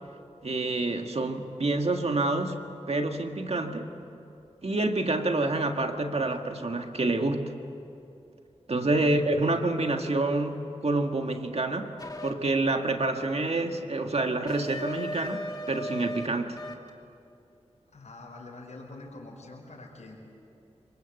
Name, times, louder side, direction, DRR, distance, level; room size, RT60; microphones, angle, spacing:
voice 1, 0.4-2.6 2.9-3.9 4.6-7.5 8.7-11.9 12.2-16.6, right 2 dB, 60° right, 4 dB, 1.8 m, -27 dB
voice 2, 8.7-9.6 17.9-20.1, left 2 dB, 75° left, -2 dB, 5.1 m, -45 dB
sound 1, 12.0-12.3 14.5-16.3 16.6-16.9, left 1 dB, 30° left, 2.2 m, -36 dB
25.5 x 24.0 x 7.9 m, 2.7 s
cardioid pair, 50°, 12 cm